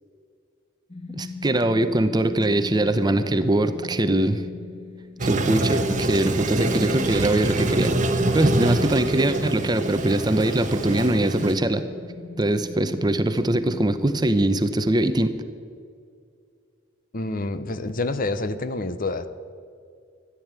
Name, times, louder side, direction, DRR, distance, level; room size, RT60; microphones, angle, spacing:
sound 1, 0.9-14.7, left 4 dB, 30° left, 1.2 m, -39 dB
voice 1, 1.1-4.4 5.2-8.0 8.3-11.8 12.4-15.4, right 1 dB, 20° right, 10 dB, 0.7 m, -22 dB
Toilet flush, 5.2-11.5, right 2 dB, 40° right, 1.2 m, -25 dB
voice 2, 17.1-19.3, left 2 dB, 45° left, 12 dB, 0.8 m, -27 dB
14.0 x 11.5 x 8.9 m, 2.3 s
head